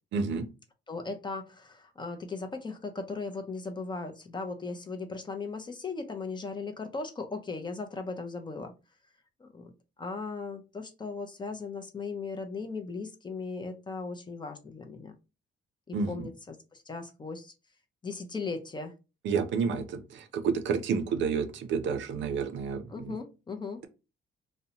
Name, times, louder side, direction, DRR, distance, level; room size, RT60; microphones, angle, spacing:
voice 1, 0.1-0.5 15.9-16.3 19.2-23.2, right 5 dB, 70° right, 0.5 m, -30 dB
voice 2, 0.9-8.7 9.4-9.7 10.0-15.1 15.9-16.6 16.9-17.5 18.0-18.9 22.9-23.8, left 4 dB, 25° left, 0.5 m, -37 dB
2.6 x 2.1 x 2.7 m
cardioid pair, 90°, 20 cm